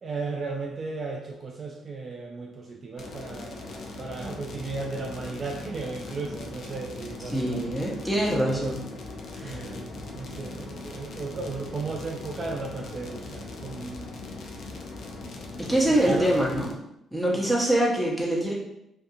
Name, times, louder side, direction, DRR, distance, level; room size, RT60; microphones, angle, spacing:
voice 1, 0.0-7.8 8.4-8.7 9.4-14.1 15.7-16.4, right 3 dB, 45° right, 0 dB, 0.3 m, -35 dB
sound 1, 3.0-16.7, left 3 dB, 70° left, 0.4 m, -40 dB
voice 2, 7.3-8.8 9.3-9.6 15.6-16.7 17.1-18.5, right 1 dB, ahead, -4 dB, 0.8 m, -24 dB
2.6 x 2.5 x 2.4 m, 0.81 s
cardioid pair, 90°, 0 cm